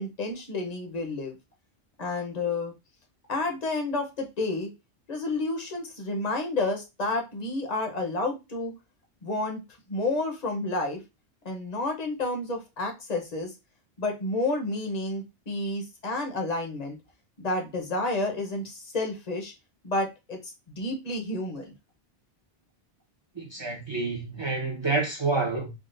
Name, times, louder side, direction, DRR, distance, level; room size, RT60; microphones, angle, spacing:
voice 1, 0.0-1.3 2.0-2.7 3.3-4.7 5.1-8.7 9.2-9.6 9.9-11.0 11.4-13.5 14.0-17.0 17.4-19.5 19.8-21.7, left 2 dB, 40° left, 0.9 m, -30 dB
voice 2, 23.3-25.7, right 3 dB, 25° right, 0.8 m, -28 dB
3.7 x 2.4 x 2.5 m
omnidirectional pair, 1.1 m